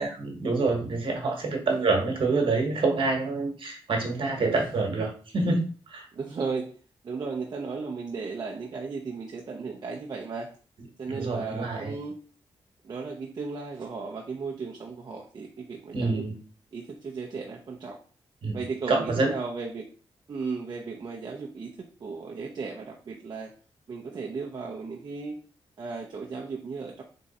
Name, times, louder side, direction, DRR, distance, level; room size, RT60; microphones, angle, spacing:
voice 1, 0.0-6.1 11.0-11.9 15.9-16.3 18.4-19.3, right 3 dB, 60° right, 2 dB, 1.3 m, -27 dB
voice 2, 6.1-6.7 7.0-10.5 11.0-12.1 12.8-16.2 16.7-18.0 18.5-19.9 20.3-23.5 23.9-25.3 25.8-27.0, right 4 dB, 45° right, -2 dB, 0.7 m, -35 dB
3.7 x 3.2 x 4.2 m, 0.41 s
wide cardioid pair, 115°, 10 cm